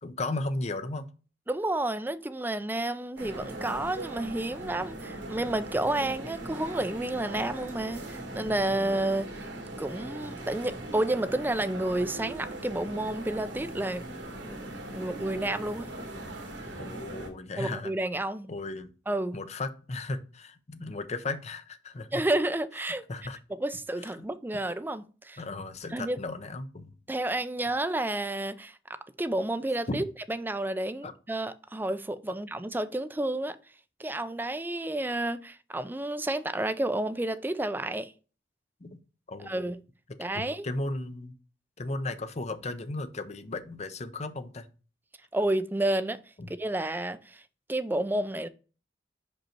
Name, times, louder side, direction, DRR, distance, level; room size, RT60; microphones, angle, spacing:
voice 1, 0.0-1.1 16.8-17.9 18.5-18.9 19.3-22.2 23.1-23.4 24.2-24.3 25.4-26.9 29.9-30.0 31.0-31.1 38.8-39.0 39.3-39.7 40.3-41.3 41.8-44.7 46.4-46.5, left 2 dB, 40° left, 0.7 m, -35 dB
voice 2, 1.5-9.5 9.8-14.1 14.4-15.9 17.6-18.5 19.1-19.4 22.1-23.0 23.5-25.4 25.9-26.2 27.1-33.6 34.0-38.1 39.4-39.8 40.2-40.7 45.3-46.2 46.6-47.4 47.7-48.5, right 1 dB, 10° right, 0.4 m, -30 dB
sound 1, 3.2-17.3, right 1 dB, 85° right, 1.7 m, -40 dB
5.4 x 5.3 x 4.4 m
head